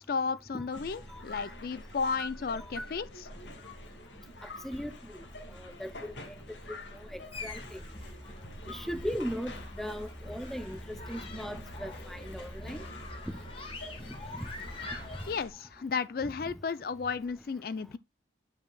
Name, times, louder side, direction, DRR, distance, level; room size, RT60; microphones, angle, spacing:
voice 1, 0.0-3.1 15.3-18.0, left 5 dB, 55° left, 0.4 m, -33 dB
sound 1, 0.7-15.5, left 1 dB, 85° left, 1.9 m, -46 dB
voice 2, 5.6-6.1 7.1-7.8 8.7-10.8 11.1-12.8 13.3-13.4 14.3-14.5, equal, ahead, 0.6 m, -38 dB
sound 2, 7.3-15.3, left 2 dB, 30° left, 1.7 m, -44 dB
8.9 x 5.7 x 2.3 m
head